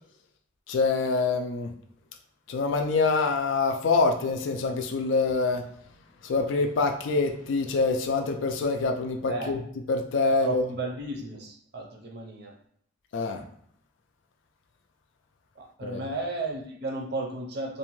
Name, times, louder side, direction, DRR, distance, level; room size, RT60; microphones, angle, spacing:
voice 1, 0.7-1.7 2.5-5.6 6.2-9.6 9.9-10.6 13.1-13.4 15.8-16.0, left 3 dB, 65° left, 4 dB, 0.4 m, -25 dB
voice 2, 9.3-9.6 10.3-12.5 15.6-17.8, right 2 dB, 50° right, 1 dB, 0.6 m, -34 dB
2.6 x 2.2 x 2.9 m, 0.65 s
head